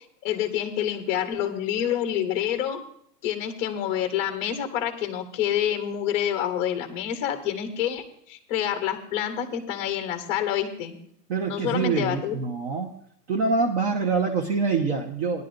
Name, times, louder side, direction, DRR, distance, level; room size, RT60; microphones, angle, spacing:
voice 1, 0.2-2.8 3.2-11.0 11.5-12.4, left 10 dB, 15° left, 7 dB, 0.6 m, -27 dB
voice 2, 11.3-12.9 13.3-15.4, right 4 dB, 40° right, 1 dB, 1.1 m, -25 dB
17.5 x 11.0 x 2.6 m, 0.68 s
hypercardioid pair, 165°, 50 cm